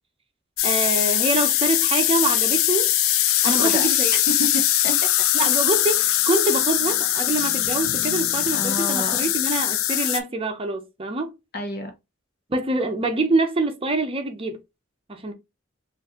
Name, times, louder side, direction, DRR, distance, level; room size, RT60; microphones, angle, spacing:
sound 1, 0.6-10.2, left 12 dB, 85° left, 0.5 m, -21 dB
voice 1, 0.6-2.9 3.4-4.2 5.3-11.3 12.5-14.6 15.1-15.3, right 2 dB, 30° right, 0.6 m, -25 dB
voice 2, 3.4-3.8 4.3-4.9 8.5-9.1 11.5-11.9, equal, 50° left, 1.0 m, -28 dB
4.5 x 2.6 x 2.8 m
head